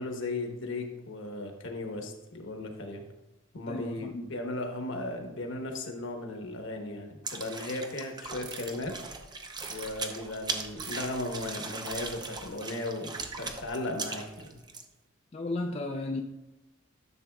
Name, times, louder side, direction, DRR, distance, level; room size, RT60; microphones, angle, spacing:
voice 1, 0.0-3.0 3.5-8.9 9.7-13.1 13.4-14.5, left 2 dB, 65° left, 3 dB, 1.2 m, -36 dB
voice 2, 3.7-4.3 15.3-16.2, left 2 dB, 30° left, 3 dB, 0.4 m, -34 dB
sound 1, 7.2-14.8, right 3 dB, 20° right, 0.7 m, -39 dB
sound 2, 8.2-12.7 13.0-14.0 14.3-14.6, right 5 dB, 65° right, 1.1 m, -48 dB
11.0 x 6.9 x 2.3 m, 1.1 s
head